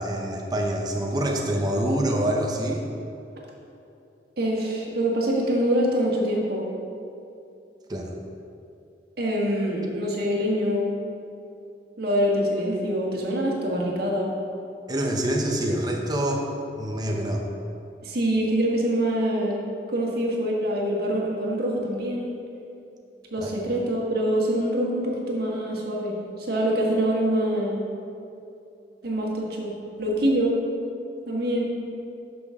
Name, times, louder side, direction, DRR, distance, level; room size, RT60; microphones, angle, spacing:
voice 1, 0.0-2.8 7.9-8.1 14.9-17.4 23.4-23.5, right 1 dB, 25° right, 0 dB, 0.8 m, -26 dB
voice 2, 4.4-6.6 9.2-10.9 12.0-14.3 18.0-19.6 19.9-22.3 23.3-27.8 29.0-29.7 30.0-30.6 31.3-31.6, equal, 60° right, -2 dB, 1.7 m, -25 dB
11.5 x 6.0 x 3.6 m, 2.7 s
head